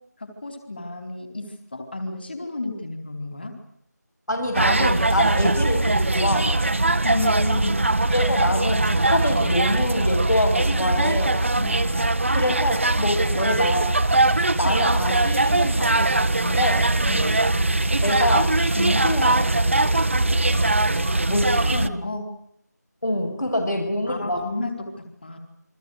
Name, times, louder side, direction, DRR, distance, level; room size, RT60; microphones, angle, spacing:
voice 1, 0.2-3.5 7.0-7.8 11.6-12.1 17.1-17.4 21.0-22.3 24.1-25.4, left 2 dB, 35° left, 6 dB, 4.3 m, -32 dB
voice 2, 4.3-6.7 8.1-11.4 12.3-13.9 14.5-16.9 18.0-20.0 21.3-21.5 23.0-24.4, left 1 dB, 75° left, 2 dB, 7.9 m, -26 dB
sound 1, 4.5-21.9, right 2 dB, 45° right, 1.5 m, -21 dB
29.5 x 24.0 x 6.6 m, 0.71 s
figure-of-eight pair, 175°, 10 cm